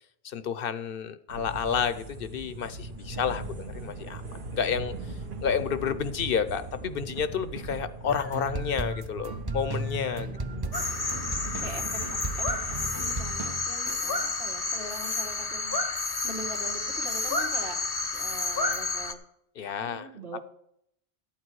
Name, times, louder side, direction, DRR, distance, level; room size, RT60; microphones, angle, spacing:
voice 1, 0.2-4.2 4.5-10.3 19.6-20.1, left 7 dB, 65° left, 13 dB, 0.8 m, -30 dB
sound 1, 1.3-13.3, right 3 dB, 55° right, 1.2 m, -39 dB
voice 2, 3.1-3.7 10.2-11.1 11.6-15.8 16.2-19.2 19.6-20.4, right 2 dB, 80° right, 2 dB, 2.0 m, -43 dB
sound 2, 8.1-14.0, right 1 dB, 25° right, 0.6 m, -35 dB
sound 3, 10.7-19.1, left 3 dB, 25° left, 0.7 m, -30 dB
12.5 x 8.9 x 4.7 m, 0.74 s
omnidirectional pair, 1.1 m